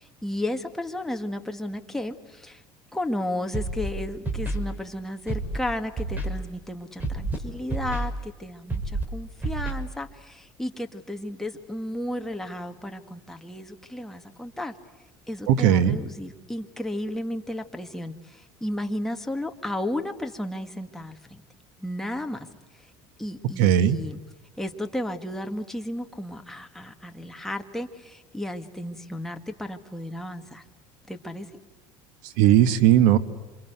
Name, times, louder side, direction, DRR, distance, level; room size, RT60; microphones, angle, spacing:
voice 1, 0.0-2.6 2.9-14.8 15.3-21.4 21.8-22.5 23.2-24.2 24.6-30.6 31.1-31.5, left 1 dB, 5° left, 4 dB, 1.7 m, -33 dB
Scratching (performance technique), 3.5-3.9 4.3-4.6 5.3-5.6 6.0-6.3 7.0-7.4 7.7-8.0 8.7-9.0 9.4-9.7, right 2 dB, 15° right, 4.7 m, -28 dB
voice 2, 15.5-16.0 23.6-24.0 32.4-33.2, right 11 dB, 85° right, 14 dB, 1.5 m, -18 dB
27.5 x 26.0 x 8.0 m, 1.2 s
cardioid pair, 135°, 11 cm